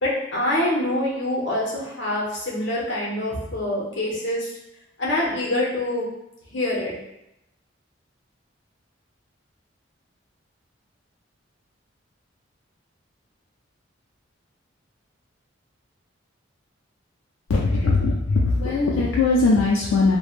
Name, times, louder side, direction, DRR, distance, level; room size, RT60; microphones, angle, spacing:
voice 1, 0.0-4.5 5.0-6.1 6.5-6.9, left 1 dB, 60° left, -4 dB, 0.8 m, -25 dB
voice 2, 17.5-20.2, left 3 dB, 80° left, -4 dB, 0.4 m, -20 dB
3.2 x 2.1 x 2.4 m, 0.86 s
head